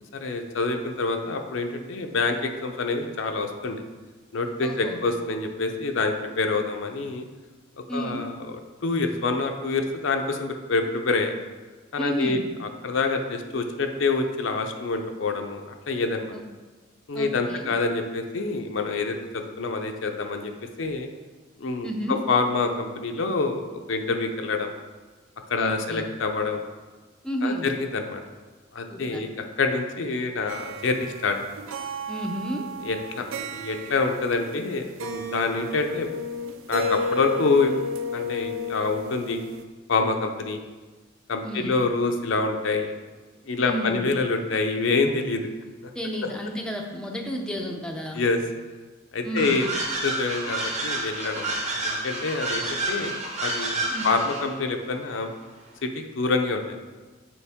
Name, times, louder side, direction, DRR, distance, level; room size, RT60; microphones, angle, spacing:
voice 1, 0.1-3.8 4.3-7.2 7.9-11.3 11.9-16.3 17.1-20.5 20.8-21.1 21.6-24.7 25.5-26.6 27.4-28.2 28.7-31.4 32.8-36.1 36.7-37.7 38.1-39.4 39.9-40.6 41.3-43.0 43.5-45.5 48.1-48.4 49.1-49.7 50.0-55.3 55.8-56.8, left 3 dB, 70° left, 5 dB, 0.6 m, -26 dB
voice 2, 4.6-5.0 7.9-8.3 12.0-12.4 16.3-16.4 17.1-17.8 21.8-22.2 25.6-26.1 27.2-27.7 28.9-29.2 32.1-32.7 41.4-41.8 43.6-44.0 45.9-48.2 49.2-49.6 53.9-54.1, equal, 5° left, 1 dB, 0.5 m, -31 dB
sound 1, 30.5-34.7 35.0-39.6, left 1 dB, 85° right, 0.5 m, -33 dB
sound 2, 49.4-54.5, right 2 dB, 35° right, 1.0 m, -29 dB
7.0 x 4.5 x 3.5 m, 1.3 s
head